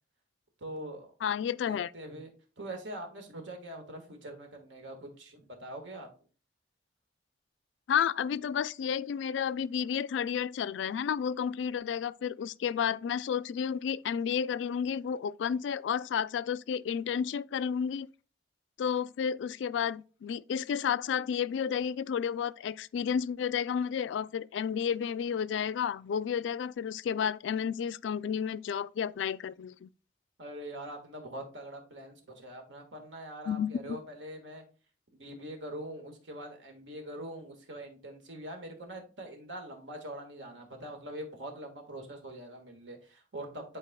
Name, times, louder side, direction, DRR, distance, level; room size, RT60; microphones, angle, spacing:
voice 1, 0.6-1.1 1.7-2.3 2.6-6.1 30.4-34.6 35.1-43.6, right 1 dB, 90° right, 1.6 m, -43 dB
voice 2, 1.2-1.9 7.9-18.1 18.8-29.9 33.5-34.0, left 7 dB, 85° left, 0.3 m, -31 dB
10.5 x 4.2 x 2.2 m
head